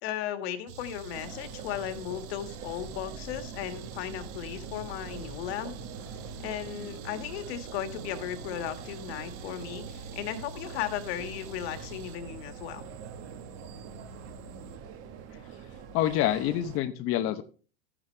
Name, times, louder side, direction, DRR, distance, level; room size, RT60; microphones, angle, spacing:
voice 1, 0.0-5.7 6.4-12.8, left 10 dB, 65° left, 8 dB, 2.0 m, -36 dB
sound 1, 0.7-14.8, right 4 dB, 65° right, 2.1 m, -46 dB
sound 2, 1.1-16.8, right 7 dB, 45° right, 1.6 m, -44 dB
voice 2, 15.9-17.4, left 12 dB, 40° left, 9 dB, 0.9 m, -27 dB
13.5 x 9.9 x 3.3 m, 0.38 s
supercardioid pair, 130°, 34 cm